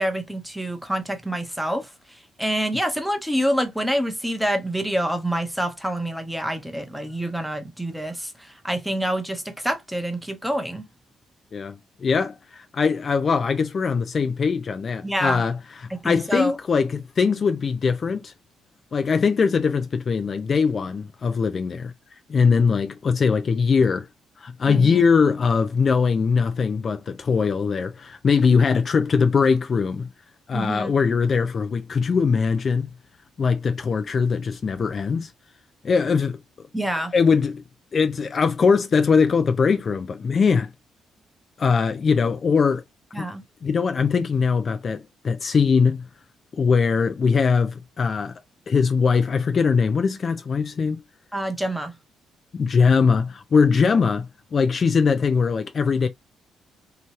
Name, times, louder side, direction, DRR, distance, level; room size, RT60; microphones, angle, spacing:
voice 1, 0.0-10.9 15.0-15.4 15.9-16.6 24.7-25.0 30.5-30.9 36.7-37.1 43.1-43.4 51.3-52.0, right 1 dB, 5° right, 0.8 m, -27 dB
voice 2, 11.5-18.3 18.9-21.9 22.3-24.1 24.4-30.1 30.5-32.9 33.4-35.3 35.8-36.4 37.1-37.6 37.9-40.7 41.6-42.8 43.2-43.3 43.6-46.0 46.6-48.3 48.7-51.0 52.5-56.1, left 5 dB, 45° left, 0.4 m, -21 dB
2.8 x 2.2 x 3.0 m
cardioid pair, 90°, 0 cm